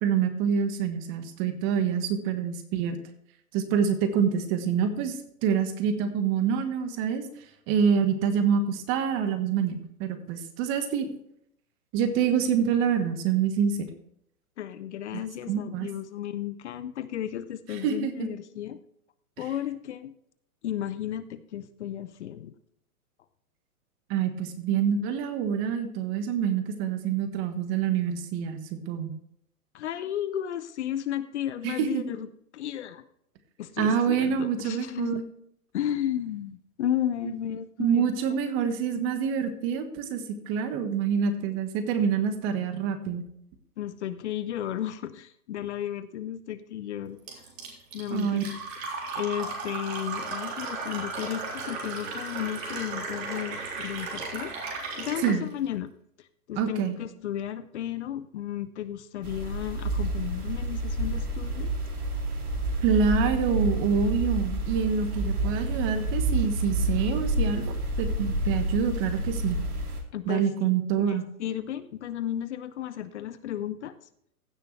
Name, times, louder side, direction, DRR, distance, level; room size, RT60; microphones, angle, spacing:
voice 1, 0.0-3.0 3.5-7.3 7.7-11.1 11.9-13.9 15.1-15.2 15.5-15.9 17.7-18.3 19.4-19.5 24.1-28.6 28.9-29.1 31.6-32.1 33.8-35.2 37.8-43.2 48.1-48.4 55.2-55.4 56.6-57.0 62.8-69.6 70.3-71.2, right 7 dB, 30° right, 9 dB, 1.3 m, -26 dB
voice 2, 14.6-18.8 19.4-20.1 20.6-22.5 29.7-32.3 32.5-33.0 33.6-35.2 35.7-38.1 43.8-47.2 47.9-48.6 49.1-54.5 54.9-55.9 56.2-61.7 70.1-70.7 71.0-73.9, left 11 dB, 50° left, 13 dB, 0.7 m, -33 dB
Fill (with liquid), 47.3-55.4, right 4 dB, 45° right, 3.6 m, -35 dB
sound 1, 59.2-70.0, right 1 dB, 75° right, 2.5 m, -29 dB
15.5 x 6.7 x 3.2 m, 0.71 s
hypercardioid pair, 125°, 44 cm